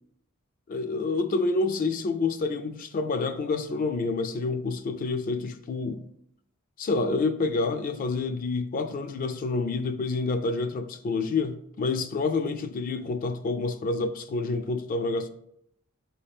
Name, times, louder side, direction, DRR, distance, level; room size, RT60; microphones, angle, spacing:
voice 1, 0.7-6.0 6.8-15.3, left 3 dB, 40° left, 0.3 m, -28 dB
5.6 x 2.8 x 3.4 m
head